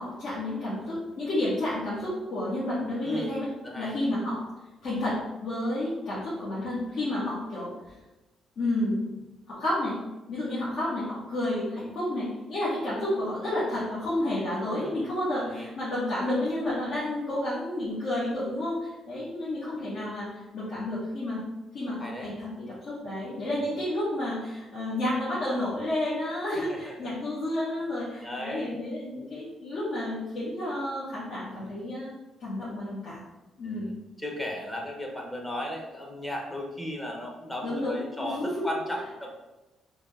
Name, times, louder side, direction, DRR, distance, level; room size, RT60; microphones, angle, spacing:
voice 1, 0.0-3.5 3.8-4.4 4.8-7.7 8.6-9.0 9.5-10.0 10.3-21.4 21.7-32.1 32.4-33.2 33.6-33.9 37.6-38.7, left 1 dB, 60° left, -11 dB, 1.4 m, -30 dB
voice 2, 22.0-22.3 23.6-23.7 26.5-27.1 28.2-28.8 31.5-31.7 33.6-39.3, left 1 dB, 10° left, 0 dB, 0.8 m, -36 dB
3.7 x 2.3 x 3.3 m, 1.0 s
cardioid pair, 90°, 0 cm